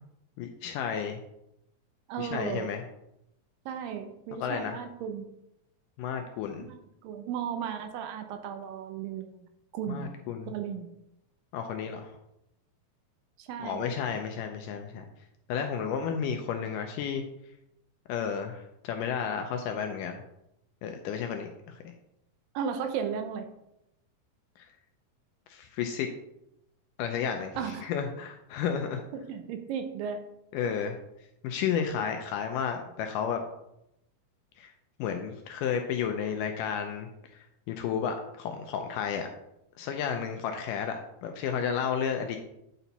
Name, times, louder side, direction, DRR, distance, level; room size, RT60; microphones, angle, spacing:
voice 1, 0.4-1.2 2.2-2.9 4.4-4.8 6.0-6.7 9.9-10.5 11.5-12.1 13.6-15.1 15.5-17.2 18.1-20.2 20.8-21.8 24.6-24.7 25.5-26.1 27.0-29.0 30.5-31.0 31.4-33.4 34.6-34.7 35.0-39.3 39.8-42.4, left 7 dB, 80° left, 5 dB, 1.9 m, -32 dB
voice 2, 2.1-2.7 3.7-5.3 6.6-9.5 9.7-10.1 10.5-10.9 13.4-13.9 22.6-23.5 27.6-27.9 29.1-30.2, right 7 dB, 80° right, 6 dB, 2.3 m, -35 dB
9.0 x 4.3 x 4.1 m, 0.83 s
omnidirectional pair, 4.2 m